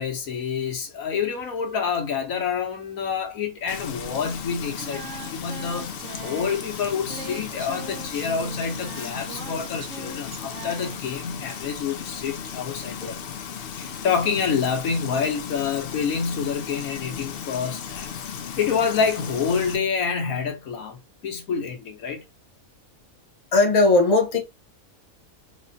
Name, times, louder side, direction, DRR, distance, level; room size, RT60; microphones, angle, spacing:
voice 1, 0.0-5.9 6.2-13.3 13.7-18.1 18.6-22.2, left 6 dB, 75° left, 1.3 m, -27 dB
Frying (food), 3.7-19.8, left 7 dB, 55° left, 0.7 m, -36 dB
Singing, 4.8-11.0, right 5 dB, 65° right, 1.1 m, -41 dB
voice 2, 23.5-24.4, left 3 dB, 25° left, 1.0 m, -17 dB
4.2 x 3.1 x 2.6 m
omnidirectional pair, 1.5 m